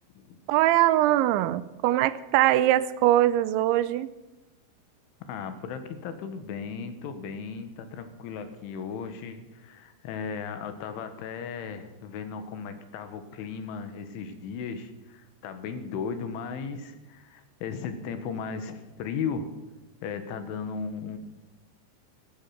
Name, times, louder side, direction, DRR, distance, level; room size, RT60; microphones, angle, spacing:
voice 1, 0.5-4.1, right 14 dB, 80° right, 16 dB, 2.9 m, -22 dB
voice 2, 5.2-19.5 20.0-21.2, left 6 dB, 85° left, 9 dB, 3.9 m, -36 dB
15.5 x 14.0 x 5.8 m, 1.1 s
omnidirectional pair, 5.4 m